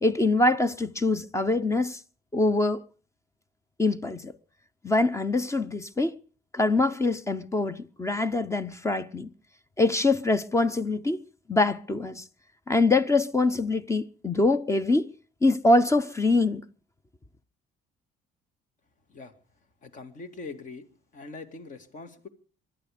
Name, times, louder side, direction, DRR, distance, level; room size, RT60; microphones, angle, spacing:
voice 1, 0.0-2.0 2.3-2.8 3.8-4.3 4.8-6.2 6.5-9.3 9.8-11.2 11.5-12.2 12.7-15.1 15.4-16.6, left 2 dB, 15° left, 0.8 m, -24 dB
voice 2, 19.8-20.9 21.1-22.3, left 3 dB, 50° left, 2.6 m, -42 dB
22.5 x 11.5 x 5.2 m
cardioid pair, 110°, 17 cm